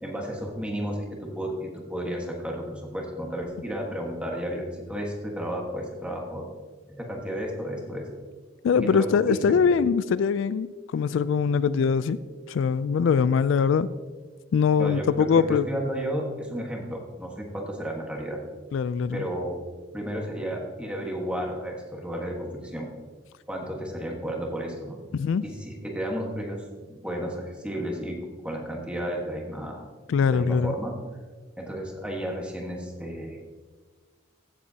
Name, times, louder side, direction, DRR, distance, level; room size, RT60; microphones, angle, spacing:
voice 1, 0.0-6.4 6.9-8.1 8.7-9.6 14.8-18.4 19.1-19.6 19.9-22.9 23.5-25.0 25.4-29.9 30.3-31.0 31.6-33.4, equal, 5° right, 0 dB, 1.4 m, -33 dB
voice 2, 8.6-12.2 12.5-13.9 14.5-15.7 18.7-19.2 25.1-25.4 30.1-30.7, left 6 dB, 75° left, 15 dB, 0.3 m, -22 dB
15.5 x 7.6 x 2.8 m, 1.4 s
head